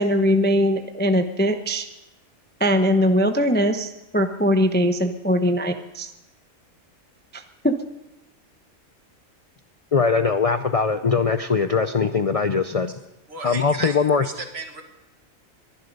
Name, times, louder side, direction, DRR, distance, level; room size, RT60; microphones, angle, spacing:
voice 1, 0.0-1.9 2.6-6.1 7.3-7.7, equal, 10° left, 7 dB, 0.5 m, -21 dB
voice 2, 9.9-12.9 13.4-14.3, left 5 dB, 70° left, 9 dB, 0.3 m, -21 dB
voice 3, 13.3-14.8, right 4 dB, 50° right, 5 dB, 1.9 m, -34 dB
22.0 x 11.5 x 5.3 m, 0.97 s
omnidirectional pair, 1.4 m